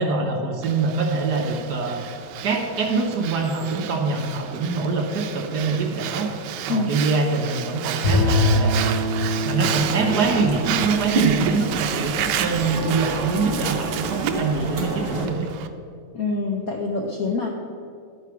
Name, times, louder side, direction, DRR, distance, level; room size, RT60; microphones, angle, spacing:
voice 1, 0.0-2.0 2.4-6.3 6.7-9.0 9.4-15.5, right 4 dB, 60° right, 2 dB, 1.2 m, -24 dB
Breathing, 0.6-15.7, right 9 dB, 85° right, 1.4 m, -31 dB
Bowed string instrument, 8.0-12.3, left 1 dB, 40° left, 2.3 m, -24 dB
sound 1, 9.7-15.3, right 3 dB, 40° right, 0.9 m, -29 dB
voice 2, 16.1-17.5, left 3 dB, 70° left, 1 dB, 0.8 m, -25 dB
11.0 x 4.7 x 5.8 m, 2.3 s
omnidirectional pair, 2.3 m